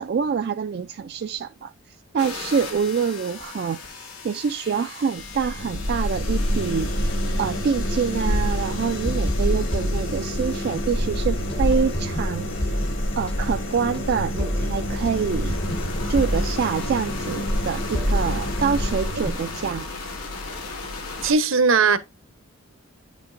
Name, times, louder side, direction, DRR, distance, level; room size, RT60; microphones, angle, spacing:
voice 1, 0.0-7.1 7.4-12.7 13.2-15.6 16.1-19.9, right 6 dB, 50° right, 0.3 m, -26 dB
sound 1, 2.2-11.2 14.2-21.3, left 3 dB, 85° left, 1.8 m, -38 dB
sound 2, 5.2-19.8, equal, 60° left, 1.7 m, -27 dB
sound 3, 9.1-10.8 11.1-19.7, equal, 25° left, 0.8 m, -30 dB
voice 2, 21.2-22.0, right 4 dB, 65° right, 0.8 m, -18 dB
9.6 x 5.2 x 2.5 m
head